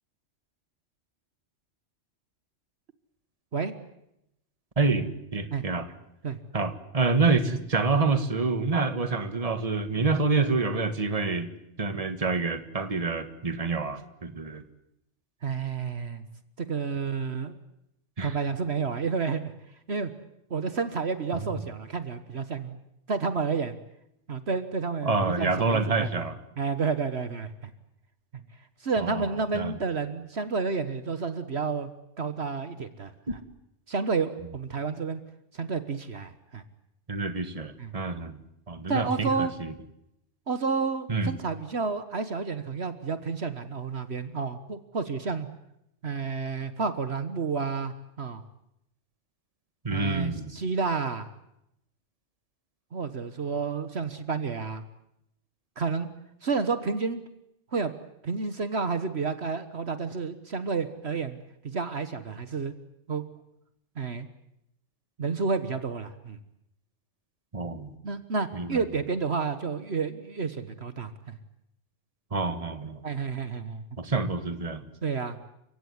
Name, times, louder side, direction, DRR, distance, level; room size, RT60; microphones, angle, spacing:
voice 1, 4.8-5.9 6.5-11.5 11.8-14.6 18.2-18.4 25.0-26.4 29.0-29.3 29.5-29.7 37.1-38.4 38.7-39.7 41.1-41.3 49.8-50.5 67.5-68.0 68.5-68.8 72.3-73.0 74.0-74.9, right 3 dB, 30° right, 10 dB, 1.8 m, -27 dB
voice 2, 15.4-16.3 16.6-17.6 18.2-19.5 19.9-20.1 20.5-22.7 23.1-23.8 24.3-26.2 26.6-27.7 28.8-31.9 32.2-33.4 33.9-35.2 35.5-36.6 37.8-37.9 38.9-39.5 40.5-45.5 46.0-48.4 49.9-51.3 52.9-54.8 55.8-56.1 56.4-57.2 57.7-57.9 58.2-61.4 61.6-62.7 63.1-63.2 64.0-64.3 65.2-66.4 68.0-71.4 73.0-73.8 75.0-75.4, right 5 dB, 60° right, 11 dB, 1.6 m, -30 dB
29.5 x 17.0 x 9.6 m, 0.82 s
omnidirectional pair, 1.2 m